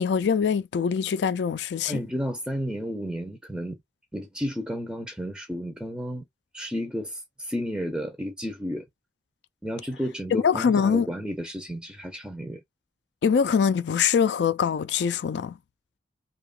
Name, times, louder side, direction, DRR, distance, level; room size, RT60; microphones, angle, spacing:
voice 1, 0.0-2.0 10.3-11.1 13.2-15.6, left 7 dB, 70° left, 0.3 m, -23 dB
voice 2, 1.9-3.8 4.1-6.2 6.5-8.8 9.6-12.6, equal, 5° right, 0.5 m, -32 dB
2.8 x 2.3 x 2.3 m
head